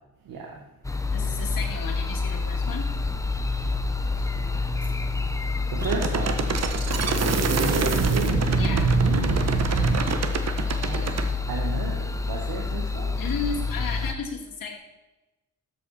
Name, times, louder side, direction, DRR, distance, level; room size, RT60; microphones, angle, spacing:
voice 1, 0.3-0.6 5.7-6.4 7.4-8.5 10.9-11.1 11.5-13.1, right 4 dB, 90° right, 0 dB, 1.8 m, -32 dB
sound 1, 0.8-14.1, left 3 dB, 10° left, 0.7 m, -28 dB
voice 2, 1.1-2.9 8.6-8.9 11.1-11.2 13.2-14.8, left 5 dB, 75° left, -1 dB, 2.7 m, -33 dB
sound 2, 5.8-11.3, right 5 dB, 50° right, 1.2 m, -24 dB
13.0 x 8.3 x 4.3 m, 1.0 s
cardioid pair, 125°, 34 cm